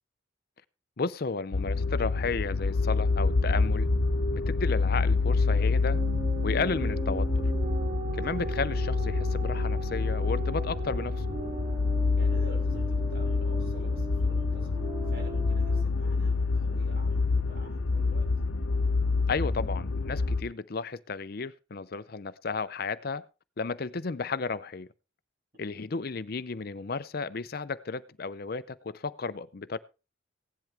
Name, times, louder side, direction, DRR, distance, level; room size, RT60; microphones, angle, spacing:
voice 1, 1.0-3.9 4.3-6.0 6.4-7.3 8.1-11.2 19.3-23.2 23.6-24.9 25.6-29.8, left 4 dB, 50° left, 0.5 m, -33 dB
sound 1, 1.5-20.4, left 3 dB, 85° left, 0.8 m, -27 dB
sound 2, 5.8-15.8, right 4 dB, 30° right, 0.7 m, -39 dB
voice 2, 12.2-18.3, equal, 50° right, 6.8 m, -49 dB
16.5 x 10.5 x 3.4 m
head